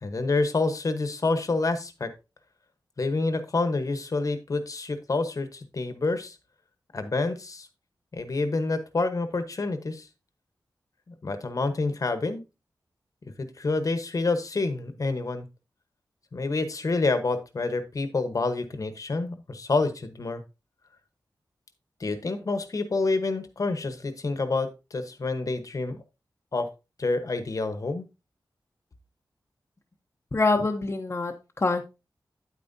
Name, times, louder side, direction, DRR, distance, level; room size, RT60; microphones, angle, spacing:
voice 1, 0.0-2.1 3.0-6.4 6.9-7.7 8.1-10.1 11.1-12.4 13.4-15.5 16.3-20.4 22.0-26.0 26.5-26.7 27.0-28.0, left 3 dB, 50° left, 10 dB, 1.1 m, -28 dB
voice 2, 30.3-31.8, left 3 dB, 30° left, 1 dB, 0.8 m, -25 dB
9.1 x 8.9 x 2.7 m, 0.27 s
wide cardioid pair, 120°, 8 cm